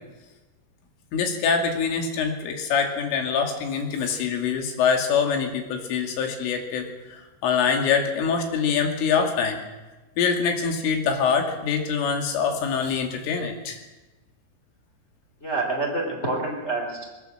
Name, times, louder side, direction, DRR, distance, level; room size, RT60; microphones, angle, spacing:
voice 1, 1.1-9.6 10.2-13.8, left 6 dB, 75° left, 3 dB, 4.9 m, -24 dB
voice 2, 15.4-17.0, right 2 dB, 15° left, 0 dB, 3.2 m, -27 dB
20.5 x 18.0 x 7.7 m, 1.1 s
omnidirectional pair, 5.8 m